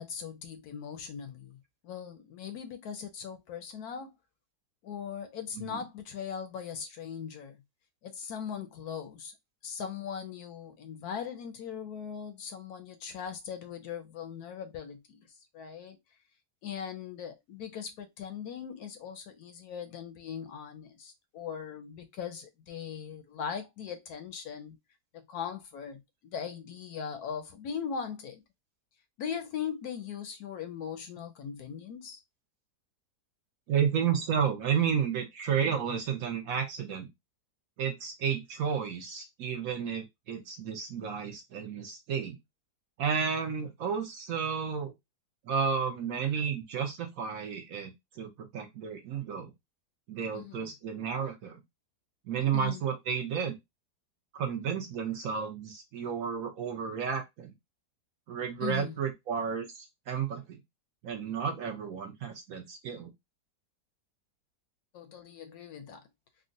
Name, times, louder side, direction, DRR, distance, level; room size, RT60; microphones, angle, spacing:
voice 1, 0.0-1.6 1.8-4.1 4.8-7.6 8.0-9.3 9.6-15.3 15.5-16.0 16.6-24.8 25.1-28.4 29.2-32.2 50.3-50.7 52.5-52.8 58.6-58.9 64.9-66.0, left 7 dB, 75° left, 1.0 m, -39 dB
voice 2, 33.7-37.1 37.8-42.4 43.0-44.9 45.5-49.5 50.1-51.6 52.3-53.6 54.3-57.5 58.3-60.6 61.0-63.1, right 7 dB, 65° right, 1.0 m, -32 dB
3.6 x 2.1 x 2.5 m
omnidirectional pair, 1.8 m